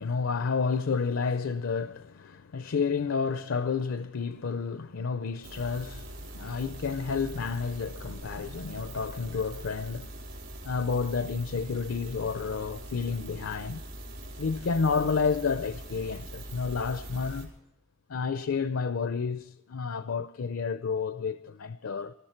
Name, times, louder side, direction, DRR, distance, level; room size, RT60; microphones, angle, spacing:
voice 1, 0.0-10.1 10.6-13.8 14.4-17.5 18.1-22.1, left 5 dB, 75° left, 0.5 m, -30 dB
sound 1, 5.4-17.5, right 1 dB, 60° right, 4.5 m, -42 dB
20.5 x 13.0 x 4.4 m
head